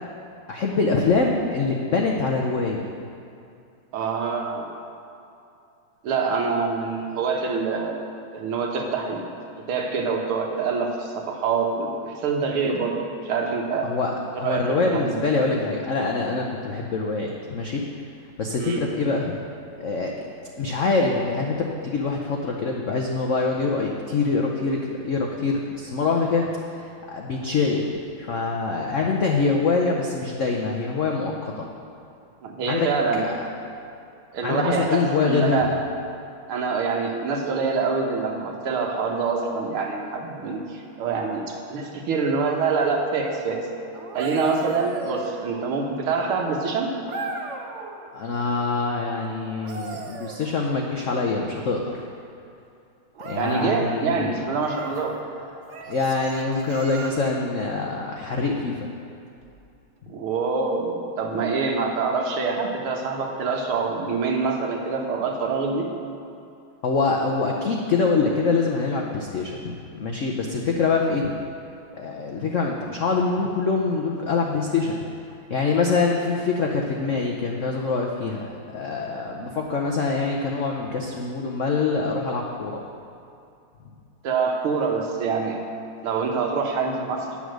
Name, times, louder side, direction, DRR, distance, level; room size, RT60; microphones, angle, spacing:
voice 1, 0.5-2.9 13.8-17.9 18.4-19.3 19.8-20.1 20.6-24.8 25.0-27.8 28.2-31.7 32.7-32.9 33.1-33.2 34.4-35.7 48.1-52.1 53.2-54.3 55.9-58.9 66.8-71.3 71.9-75.1 75.5-82.8, left 4 dB, 85° left, 0 dB, 0.6 m, -24 dB
voice 2, 3.9-4.7 6.0-8.0 8.3-9.3 9.7-13.0 13.2-13.9 14.3-15.2 18.6-18.9 32.4-33.5 34.3-35.7 36.5-43.6 44.1-46.9 53.3-55.1 60.1-65.9 84.2-85.6 86.0-87.4, right 4 dB, 85° right, 1 dB, 2.0 m, -25 dB
sound 1, 43.9-45.9 47.1-48.0 49.4-51.1 53.1-53.8 54.6-55.0 55.7-57.5 59.3-59.5, right 4 dB, 60° right, 0.8 m, -37 dB
9.5 x 7.0 x 6.4 m, 2.6 s
omnidirectional pair, 2.3 m